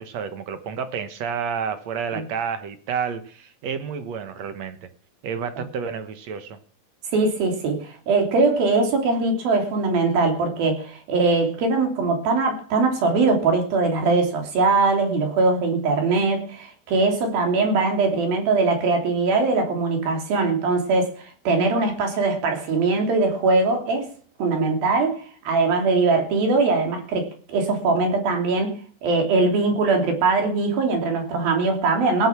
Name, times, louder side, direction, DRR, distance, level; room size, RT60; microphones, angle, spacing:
voice 1, 0.0-4.9 5.2-6.6, right 6 dB, 60° right, 10 dB, 2.1 m, -30 dB
voice 2, 7.1-24.1 24.4-32.3, right 3 dB, 75° right, 3 dB, 4.8 m, -21 dB
17.5 x 9.4 x 6.1 m, 0.43 s
omnidirectional pair, 4.2 m